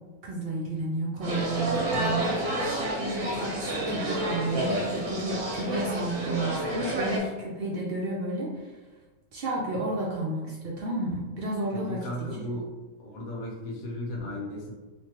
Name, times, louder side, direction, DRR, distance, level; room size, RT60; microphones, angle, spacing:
voice 1, 0.2-8.7 9.3-12.0 12.5-12.6, right 2 dB, 70° right, -4 dB, 0.5 m, -32 dB
sound 1, 1.2-7.2, right 1 dB, 90° right, 1.3 m, -29 dB
voice 2, 11.7-12.7 13.0-14.7, left 1 dB, 55° left, -2 dB, 0.5 m, -35 dB
3.1 x 2.2 x 2.8 m, 1.2 s
omnidirectional pair, 1.5 m